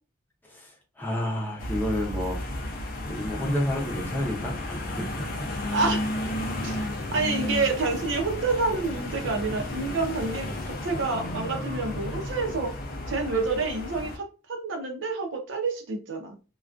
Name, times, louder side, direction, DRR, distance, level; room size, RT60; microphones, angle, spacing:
voice 1, 0.4-2.4 3.0-5.5, left 1 dB, 10° left, -2 dB, 0.6 m, -30 dB
sound 1, 1.6-14.2, left 1 dB, 50° left, 0.5 m, -33 dB
voice 2, 5.7-6.1 6.6-12.7 13.1-16.4, right 3 dB, 75° right, 4 dB, 0.6 m, -28 dB
2.4 x 2.2 x 2.4 m, 0.32 s
head